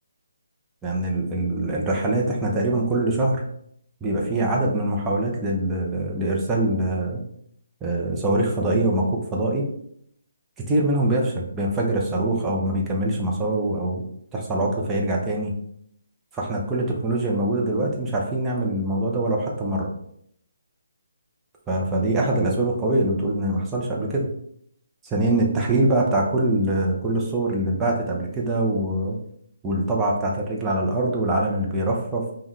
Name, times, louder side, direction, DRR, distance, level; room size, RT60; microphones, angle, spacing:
voice 1, 0.8-3.5 4.0-7.2 7.8-9.7 10.7-14.0 14.3-15.5 16.3-19.9 21.7-24.3 25.0-29.2 29.6-32.3, right 1 dB, 10° right, -3 dB, 0.7 m, -23 dB
5.3 x 2.4 x 3.2 m, 0.70 s
figure-of-eight pair, 145°, 0 cm